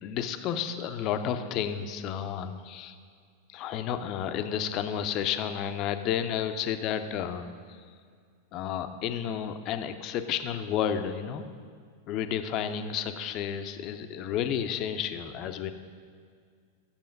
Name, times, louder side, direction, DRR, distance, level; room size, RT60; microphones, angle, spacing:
voice 1, 0.0-3.0 3.5-7.5 8.5-11.4 12.1-15.7, left 9 dB, 40° left, 9 dB, 0.6 m, -31 dB
9.8 x 7.1 x 5.3 m, 2.1 s
figure-of-eight pair, 90°, 0 cm